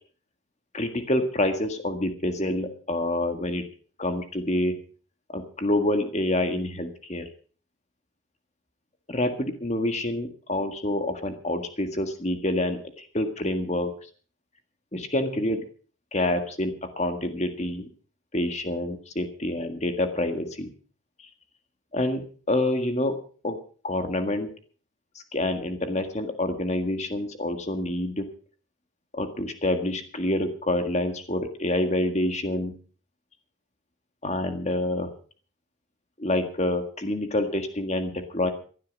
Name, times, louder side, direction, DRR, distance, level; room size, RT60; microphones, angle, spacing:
voice 1, 0.7-3.6 4.0-4.8 5.3-7.2 9.1-13.9 14.9-15.6 16.1-17.9 18.3-20.7 21.2-21.3 21.9-23.2 23.4-23.6 23.8-24.5 25.3-28.2 29.1-32.7 34.2-35.1 36.2-38.5, left 1 dB, 30° left, 7 dB, 1.7 m, -27 dB
16.5 x 12.0 x 5.3 m, 0.42 s
head